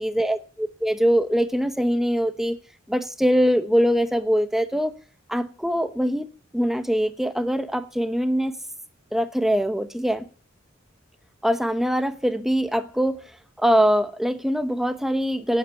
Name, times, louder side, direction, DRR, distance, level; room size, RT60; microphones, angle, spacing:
voice 1, 0.0-2.6 2.9-4.9 5.3-6.3 6.5-8.5 9.1-10.3 11.4-13.2 13.6-15.6, equal, ahead, 10 dB, 0.9 m, -23 dB
18.0 x 8.4 x 7.0 m, 0.42 s
head